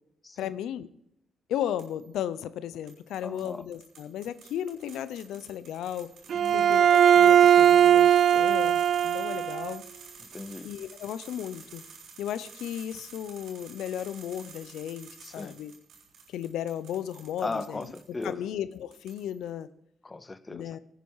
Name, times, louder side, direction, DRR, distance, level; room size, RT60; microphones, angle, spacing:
voice 1, 0.4-0.9 1.5-6.1 6.5-9.8 10.6-11.8 12.2-15.7 16.3-17.9 18.2-19.7 20.5-20.8, left 10 dB, 80° left, 15 dB, 0.6 m, -35 dB
sound 1, 1.8-2.2 2.9-18.3 18.7-19.5, right 5 dB, 75° right, 3.8 m, -50 dB
voice 2, 3.2-3.6 6.3-6.8 10.3-10.7 15.2-15.6 17.4-18.4 20.0-20.8, left 3 dB, 20° left, 16 dB, 0.7 m, -37 dB
Bowed string instrument, 6.3-9.7, right 9 dB, 60° right, 0.5 m, -19 dB
16.0 x 9.2 x 4.7 m, 0.76 s
cardioid pair, 90°, 0 cm